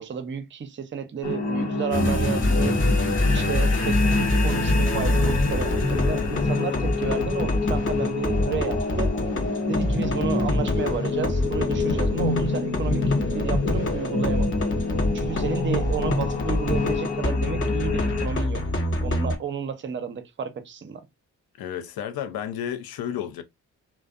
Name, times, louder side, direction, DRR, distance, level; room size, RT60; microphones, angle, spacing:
voice 1, 0.0-2.8 3.3-9.1 9.7-14.6 15.1-18.6 19.0-21.0, right 7 dB, 30° right, 0.6 m, -32 dB
sound 1, 1.2-18.3, left 3 dB, 85° left, 0.9 m, -27 dB
sound 2, 1.9-19.4, left 1 dB, 30° left, 0.7 m, -26 dB
voice 2, 21.6-23.4, left 10 dB, 65° left, 0.6 m, -32 dB
2.5 x 2.1 x 2.3 m
hypercardioid pair, 45°, 39 cm